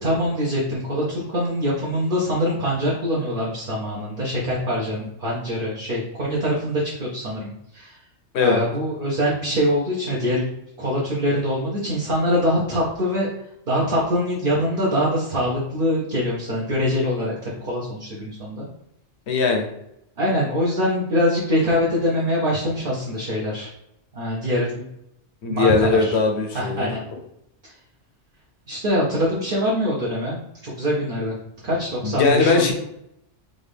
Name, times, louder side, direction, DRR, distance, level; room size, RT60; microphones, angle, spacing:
voice 1, 0.0-8.0 8.4-10.5 10.8-13.3 13.7-18.7 20.2-23.7 24.1-24.8 25.5-26.2 26.5-27.0 28.7-31.4 31.6-32.7, equal, 50° right, -5 dB, 0.9 m, -24 dB
voice 2, 19.3-19.6 25.4-26.9 32.0-32.7, left 4 dB, 65° left, 2 dB, 1.0 m, -19 dB
3.9 x 2.4 x 3.3 m, 0.79 s
omnidirectional pair, 1.2 m